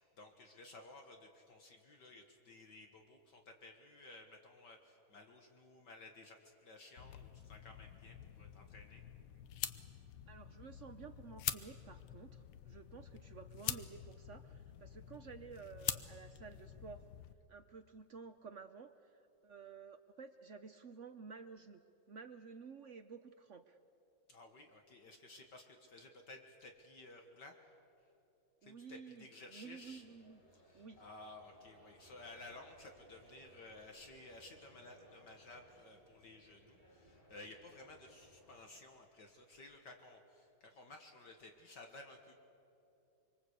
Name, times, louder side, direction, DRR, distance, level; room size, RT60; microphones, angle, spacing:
voice 1, 0.0-9.0 24.3-27.6 28.6-30.0 30.5-42.3, left 2 dB, 55° left, 4 dB, 2.2 m, -56 dB
sound 1, 7.0-17.3, left 11 dB, 80° left, 1.8 m, -46 dB
voice 2, 10.3-17.0 17.5-21.8 22.1-23.8 28.6-30.4 30.7-31.0, right 5 dB, 70° right, 8 dB, 0.7 m, -53 dB
sound 2, 29.8-38.7, right 1 dB, 20° left, 6.7 m, -65 dB
25.5 x 24.5 x 8.3 m, 2.8 s
omnidirectional pair, 2.3 m